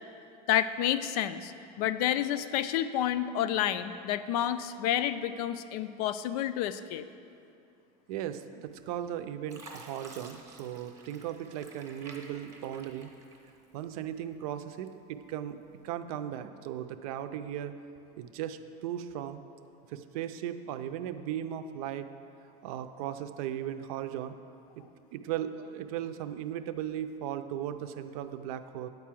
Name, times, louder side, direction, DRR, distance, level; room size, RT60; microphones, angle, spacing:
voice 1, 0.5-1.5 1.8-7.0, left 11 dB, 75° left, 12 dB, 0.5 m, -29 dB
voice 2, 8.1-13.1 13.7-15.6 15.8-17.7 18.2-19.4 19.9-22.1 22.6-24.4 24.8-24.9 25.1-28.9, right 10 dB, 70° right, 10 dB, 0.5 m, -37 dB
Fill (with liquid), 8.7-9.1 9.5-13.9 14.3-15.1 15.7-15.8, right 2 dB, 15° right, 0.8 m, -51 dB
9.3 x 4.7 x 7.5 m, 2.6 s
cardioid pair, 180°, 19 cm